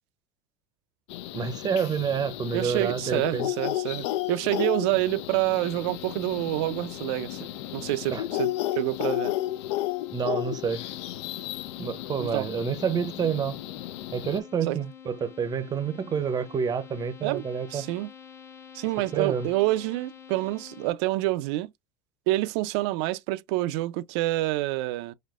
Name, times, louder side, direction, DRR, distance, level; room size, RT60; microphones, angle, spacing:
sound 1, 1.1-14.4, left 15 dB, 80° left, 0.4 m, -33 dB
voice 1, 1.3-3.5 8.1-8.2 10.1-10.8 11.8-13.6 14.1-17.9 19.1-19.5, right 6 dB, 30° right, 0.6 m, -28 dB
voice 2, 2.5-7.4 7.7-9.3 12.2-12.5 14.7-14.8 17.2-17.4 17.7-18.1 18.7-21.7 22.3-25.1, right 18 dB, 70° right, 0.4 m, -27 dB
sound 2, 5.5-20.9, left 8 dB, 20° left, 0.7 m, -48 dB
4.2 x 2.5 x 2.4 m
supercardioid pair, 110°, 14 cm